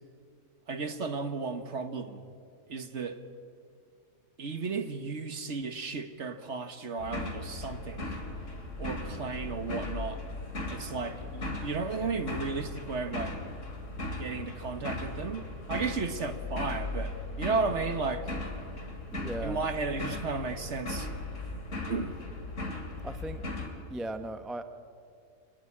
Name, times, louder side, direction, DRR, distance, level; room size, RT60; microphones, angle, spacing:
voice 1, 0.7-2.2 2.7-3.2 4.4-8.2 8.8-10.2 10.7-13.3 14.2-18.3 19.4-21.1 21.9-22.2, right 4 dB, 50° right, 9 dB, 1.5 m, -34 dB
sound 1, 7.0-23.7, left 2 dB, 50° left, 3.1 m, -38 dB
voice 2, 19.1-19.6 23.0-23.5 23.9-24.6, right 1 dB, ahead, 9 dB, 0.5 m, -37 dB
26.0 x 20.0 x 8.7 m, 2.4 s
omnidirectional pair, 1.7 m